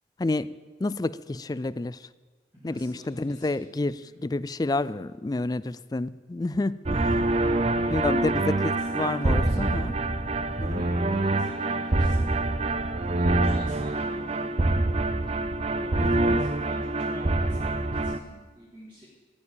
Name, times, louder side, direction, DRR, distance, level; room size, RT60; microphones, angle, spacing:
voice 1, 0.8-2.0 2.6-7.4 7.9-9.9 10.6-10.8 16.0-16.4, left 2 dB, 20° left, 17 dB, 0.4 m, -29 dB
voice 2, 2.5-4.2 7.4-9.8 10.7-12.4 12.9-14.9 15.6-19.1, left 1 dB, 15° right, -9 dB, 3.7 m, -47 dB
sound 1, 6.9-18.2, right 2 dB, 35° right, 0.6 m, -25 dB
13.5 x 8.6 x 9.0 m, 1.4 s
head